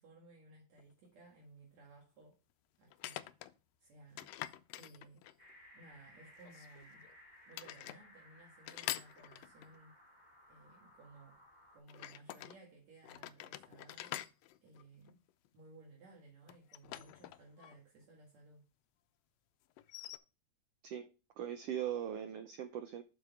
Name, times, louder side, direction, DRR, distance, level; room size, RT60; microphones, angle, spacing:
voice 1, 0.0-2.4 2.8-3.2 3.8-4.3 4.8-5.2 5.7-7.0 7.5-10.0 10.5-11.4 11.7-14.2 14.6-15.2 15.5-18.7, right 3 dB, 65° right, -2 dB, 3.0 m, -59 dB
sound 1, 0.8-0.9 2.9-3.5 4.2-5.5 6.4-7.2 7.5-8.0 8.7-9.8 11.9-12.6 13.0-15.5 16.5-17.8 18.0-18.1 19.8-20.2, left 14 dB, 80° left, 1.5 m, -46 dB
sound 2, 5.4-11.8, left 1 dB, 15° right, 3.8 m, -61 dB
voice 2, 21.4-23.0, right 10 dB, 85° right, 9 dB, 1.3 m, -40 dB
7.8 x 6.6 x 3.5 m, 0.32 s
omnidirectional pair, 3.5 m